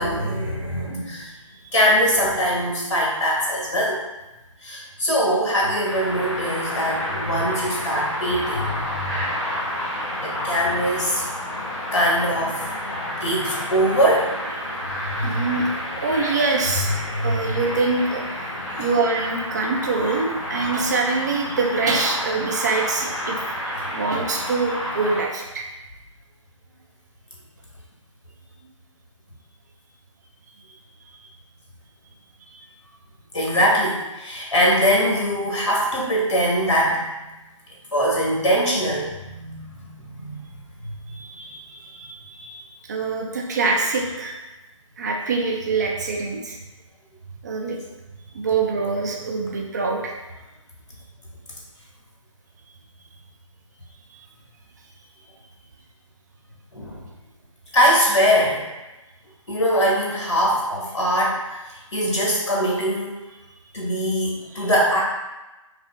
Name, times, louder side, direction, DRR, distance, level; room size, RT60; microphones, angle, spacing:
voice 1, 0.0-1.3 1.7-4.0 4.6-9.1 10.1-11.3 11.9-12.6 13.2-14.3 15.0-15.5 17.1-17.6 18.7-18.9 33.3-37.2 37.9-40.4 40.8-40.9 56.7-57.0 57.7-58.6 59.5-61.6 61.9-63.1 63.7-65.0, equal, 60° left, -4 dB, 1.4 m, -22 dB
sound 1, 5.8-25.2, left 1 dB, 35° left, 1.2 m, -30 dB
voice 2, 15.1-15.7 15.9-16.9 17.2-25.7 32.5-32.6 41.1-44.4 45.0-46.6 47.4-47.8 48.3-50.2 54.1-54.3 64.5-64.7, right 4 dB, 35° right, 0 dB, 0.5 m, -25 dB
5.2 x 2.0 x 2.6 m, 1.1 s
figure-of-eight pair, 145°, 17 cm